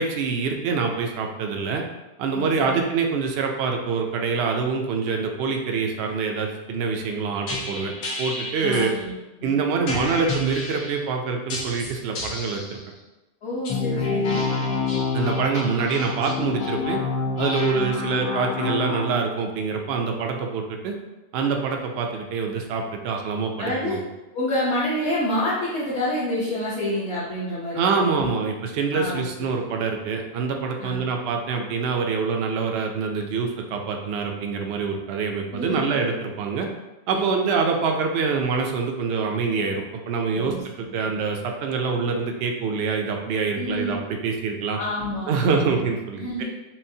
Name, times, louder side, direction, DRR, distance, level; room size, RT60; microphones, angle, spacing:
voice 1, 0.0-1.8 2.2-7.9 8.2-8.9 9.4-12.8 15.1-17.0 17.4-21.0 21.3-24.0 27.7-36.7 37.1-44.8 45.3-46.4, right 5 dB, 75° right, 3 dB, 0.6 m, -25 dB
voice 2, 2.3-2.8 8.6-9.5 13.4-14.5 17.7-18.1 23.6-24.0 24.3-28.3 28.9-29.3 30.8-31.1 35.5-36.0 37.1-37.4 40.3-40.6 41.0-41.1 43.6-44.0 44.8-45.8 46.2-46.4, left 1 dB, 55° left, -7 dB, 1.0 m, -28 dB
sound 1, 7.5-8.9 9.9-10.9 11.5-12.7 13.5-19.1, left 4 dB, 85° left, 1.3 m, -28 dB
5.9 x 2.0 x 2.7 m, 1.1 s
omnidirectional pair, 1.6 m